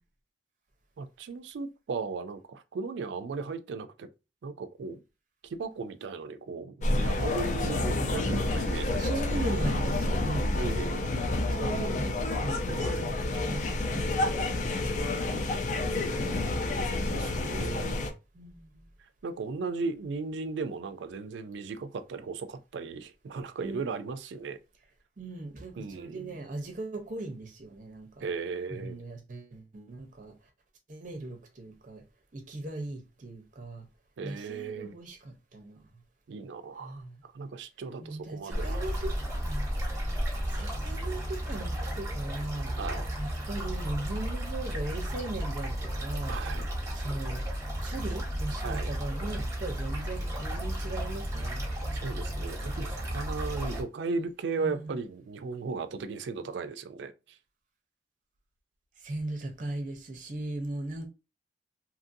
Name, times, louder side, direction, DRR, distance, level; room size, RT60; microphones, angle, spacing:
voice 1, 1.0-4.1 4.4-5.0 5.4-9.4 10.5-11.1 12.7-13.1 16.2-16.6 17.1-18.0 19.2-24.6 25.8-26.4 28.2-29.0 34.2-34.9 36.3-37.0 37.3-38.9 42.7-43.1 46.3-46.7 48.6-48.9 51.9-57.4, right 4 dB, 75° right, 0.3 m, -36 dB
sound 1, 6.8-18.1, left 2 dB, 40° left, 0.4 m, -29 dB
voice 2, 9.0-10.5 11.5-15.2 15.7-16.6 18.3-18.7 23.6-23.8 25.2-28.3 28.7-30.3 30.9-32.0 32.3-33.8 34.2-35.8 36.8-37.2 38.0-39.1 39.4-39.7 40.5-42.7 43.2-46.4 46.9-47.5 47.8-51.6 54.6-54.8 59.0-61.1, right 2 dB, 45° right, 0.7 m, -39 dB
sound 2, 38.5-53.8, equal, 15° right, 0.9 m, -33 dB
2.8 x 2.5 x 2.6 m
head